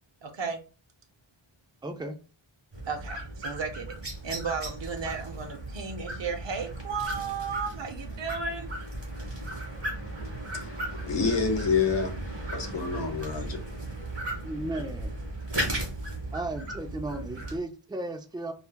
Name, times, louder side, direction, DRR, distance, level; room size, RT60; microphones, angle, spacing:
voice 1, 0.2-0.6 2.9-8.7, right 5 dB, 65° right, 0.7 m, -34 dB
voice 2, 1.8-2.2 14.4-15.2 16.3-18.5, right 2 dB, 10° right, 0.4 m, -35 dB
sound 1, 2.7-17.6, right 1 dB, 30° right, 1.3 m, -36 dB
voice 3, 10.4-12.2 12.5-13.6, left 5 dB, 60° left, 0.9 m, -28 dB
4.1 x 2.3 x 2.2 m
wide cardioid pair, 70°, 49 cm